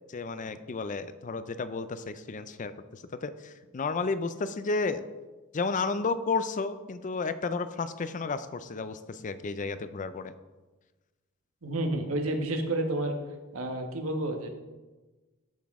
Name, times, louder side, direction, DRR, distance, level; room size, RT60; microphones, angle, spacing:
voice 1, 0.1-5.0 5.5-10.3, left 4 dB, 35° left, 12 dB, 0.4 m, -32 dB
voice 2, 11.6-13.2 13.5-14.5, right 1 dB, 80° right, 4 dB, 1.2 m, -30 dB
13.5 x 6.0 x 3.6 m, 1.2 s
head